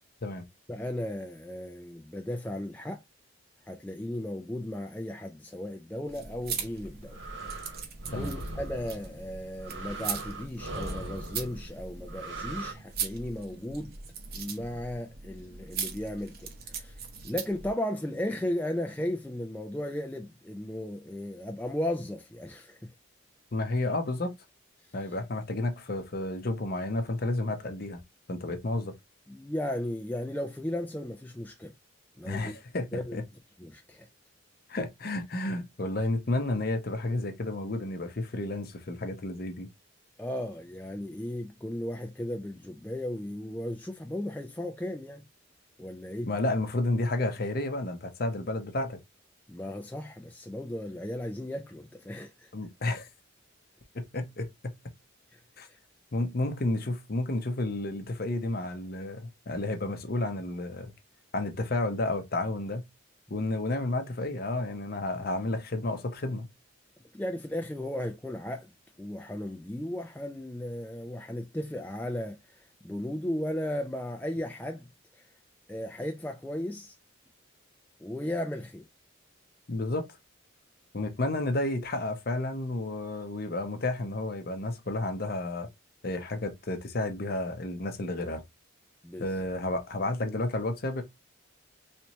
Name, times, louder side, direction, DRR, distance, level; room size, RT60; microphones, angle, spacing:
voice 1, 0.7-3.0 3.7-7.2 7.6-7.7 8.1-13.9 14.3-16.9 17.2-22.9 29.3-31.7 32.2-32.5 32.9-33.2 33.6-34.1 40.2-45.2 45.8-46.3 49.5-52.5 55.3-55.4 55.7-55.8 67.1-68.7 69.0-74.9 75.1-75.3 75.7-77.0 78.0-78.8 89.0-89.3, left 1 dB, 10° left, 0.3 m, -35 dB
sound 1, 6.0-17.7, right 6 dB, 45° right, 0.7 m, -40 dB
sound 2, 6.8-12.7, right 2 dB, 65° right, 1.3 m, -40 dB
voice 2, 23.5-24.3 24.9-28.0 28.3-28.9 32.2-33.2 34.7-39.7 46.3-49.0 52.5-53.1 53.9-54.5 55.6-55.7 56.1-60.9 61.3-62.8 63.3-66.5 79.7-80.1 80.9-85.7 86.0-88.4 89.2-91.0, left 2 dB, 45° left, 0.6 m, -31 dB
3.3 x 2.9 x 2.9 m
head